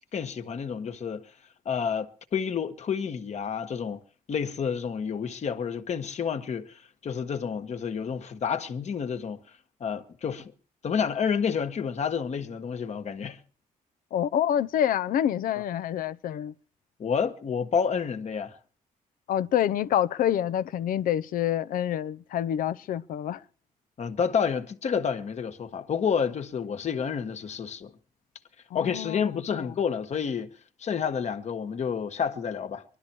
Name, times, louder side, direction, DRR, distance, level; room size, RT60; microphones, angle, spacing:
voice 1, 0.1-1.3 1.6-4.0 4.3-9.4 9.8-10.5 10.8-13.4 17.0-18.6 24.0-27.9 28.7-30.5 30.8-32.8, left 6 dB, 55° left, 1.5 m, -29 dB
voice 2, 14.1-16.5 19.3-23.4 28.7-29.6, left 10 dB, 85° left, 0.7 m, -27 dB
21.5 x 12.5 x 4.5 m
cardioid pair, 110°, 14 cm